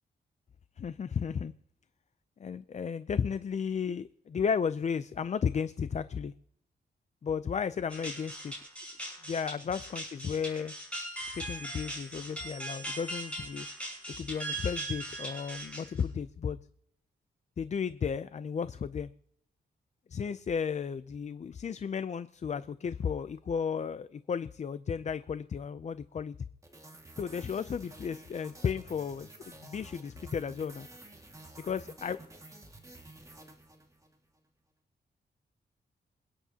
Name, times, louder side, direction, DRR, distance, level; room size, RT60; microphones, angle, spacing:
voice 1, 0.8-1.5 2.4-6.3 7.2-8.5 9.3-10.7 11.2-13.7 14.2-16.6 17.6-19.1 20.1-26.4 27.2-29.3 29.6-30.9 31.6-32.2, left 6 dB, 40° left, 13 dB, 0.4 m, -34 dB
sound 1, 7.9-16.2, right 1 dB, 5° left, 6.7 m, -40 dB
sound 2, 26.6-34.2, right 2 dB, 20° right, 1.9 m, -51 dB
27.5 x 9.7 x 2.8 m, 0.71 s
wide cardioid pair, 120°, 18 cm